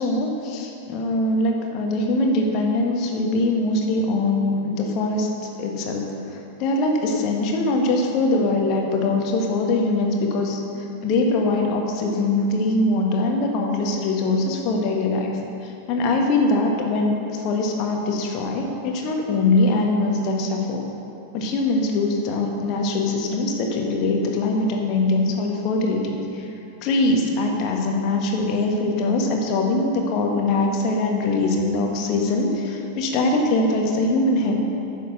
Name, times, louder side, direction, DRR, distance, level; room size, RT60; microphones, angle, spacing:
voice 1, 0.0-5.3 5.6-10.6 11.0-15.3 15.6-20.8 21.3-26.5 26.8-34.6, left 2 dB, 40° left, 1 dB, 1.5 m, -22 dB
9.9 x 6.7 x 6.3 m, 2.8 s
figure-of-eight pair, 90°, 0 cm